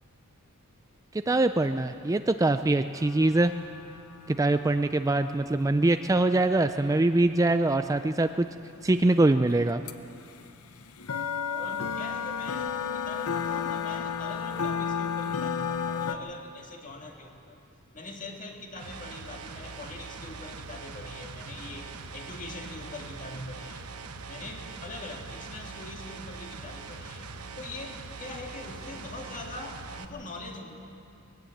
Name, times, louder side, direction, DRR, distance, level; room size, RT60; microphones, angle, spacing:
voice 1, 1.1-3.5 4.3-8.5 8.8-9.8, right 2 dB, 15° right, 9 dB, 0.4 m, -23 dB
sound 1, 2.9-8.9 9.3-9.4 9.6-9.9 10.2-16.2, left 7 dB, 70° left, 0.8 m, -33 dB
voice 2, 11.5-17.6 17.9-23.9 24.3-27.3 27.6-30.8, left 2 dB, 35° left, 2 dB, 2.1 m, -42 dB
sound 2, 18.8-30.0, right 4 dB, 75° right, 1.1 m, -42 dB
20.0 x 17.5 x 7.9 m, 2.6 s
head